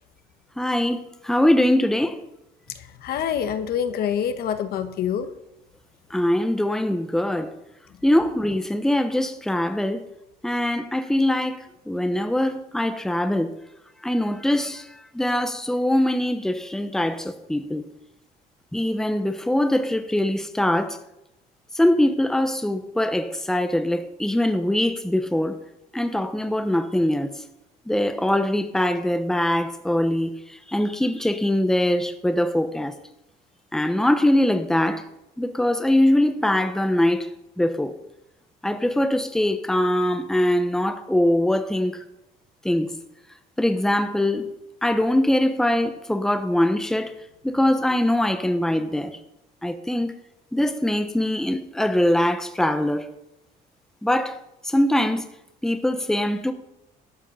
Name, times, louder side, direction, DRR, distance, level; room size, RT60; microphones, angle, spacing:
voice 1, 0.6-2.2 6.1-7.5 8.0-10.0 10.4-13.5 14.0-17.8 18.7-21.0 21.7-25.6 25.9-27.4 27.9-30.3 30.7-32.9 33.7-35.0 35.4-37.3 37.6-37.9 38.6-42.0 42.6-42.9 43.6-44.5 44.8-47.1 47.4-49.2 49.6-50.1 50.5-53.1 54.0-54.4 54.6-55.3 55.6-56.5, left 1 dB, 5° left, 1.0 m, -22 dB
voice 2, 3.0-5.3, left 8 dB, 65° left, 1.2 m, -26 dB
12.5 x 8.2 x 5.6 m
cardioid pair, 110°, 17 cm